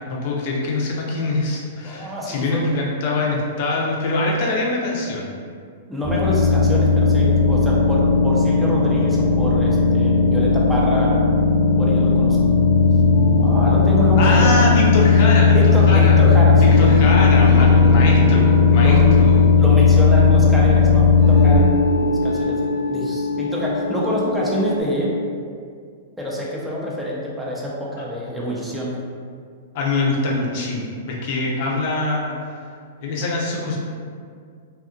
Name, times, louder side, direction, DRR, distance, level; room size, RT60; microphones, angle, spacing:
voice 1, 0.1-5.3 14.2-16.2 16.6-19.4 29.7-32.6 33.0-33.8, left 2 dB, 55° left, -3 dB, 0.5 m, -23 dB
voice 2, 1.8-2.8 5.9-11.2 11.8-12.4 13.4-14.5 15.5-16.9 18.8-19.1 19.6-25.2 26.2-29.0, equal, 5° right, -6 dB, 0.6 m, -26 dB
sound 1, 6.0-21.5, left 4 dB, 35° right, 1.0 m, -15 dB
sound 2, 13.1-24.8, equal, 65° right, 0.9 m, -27 dB
2.7 x 2.5 x 2.4 m, 2.1 s
hypercardioid pair, 105°, 0 cm